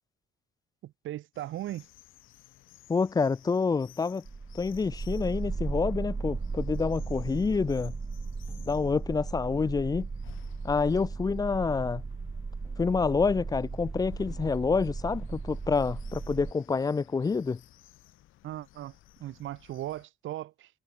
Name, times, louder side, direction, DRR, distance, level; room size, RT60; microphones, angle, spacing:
voice 1, 0.8-1.9 18.4-18.9 19.2-20.7, right 14 dB, 75° right, 0.9 m, -38 dB
sound 1, 1.3-20.1, left 15 dB, 85° left, 3.3 m, -57 dB
voice 2, 2.9-4.2 4.5-7.9 8.7-10.1 10.6-12.0 12.8-17.6, left 4 dB, 20° left, 0.4 m, -27 dB
sound 2, 4.3-16.5, right 4 dB, 20° right, 0.8 m, -36 dB
sound 3, 6.5-15.1, equal, 5° left, 3.9 m, -59 dB
cardioid pair, 90°, 20 cm